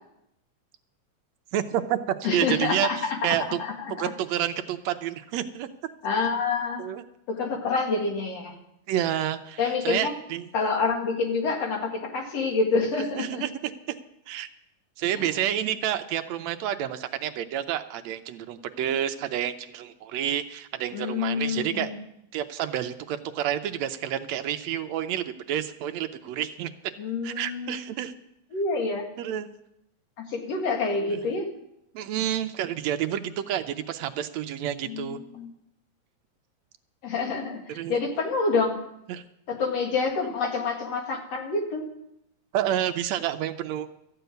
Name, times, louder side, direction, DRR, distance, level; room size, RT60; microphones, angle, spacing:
voice 1, 1.5-2.9 3.2-3.6 4.0-5.7 6.8-7.0 8.9-10.5 13.2-14.0 14.3-14.5 15.0-21.9 22.3-26.9 27.2-28.1 29.2-29.5 31.1-31.2 31.9-35.2 37.7-37.9 39.1-39.2 42.5-43.9, right 11 dB, 80° right, 9 dB, 1.8 m, -29 dB
voice 2, 2.2-4.1 6.0-6.8 7.3-8.5 9.6-10.1 10.5-13.4 15.1-15.3 20.9-22.0 27.0-27.9 28.5-29.1 30.3-31.5 34.8-35.5 37.0-38.8 39.5-41.9, left 4 dB, 60° left, 2 dB, 3.0 m, -27 dB
13.5 x 6.8 x 9.2 m, 0.80 s
omnidirectional pair, 3.3 m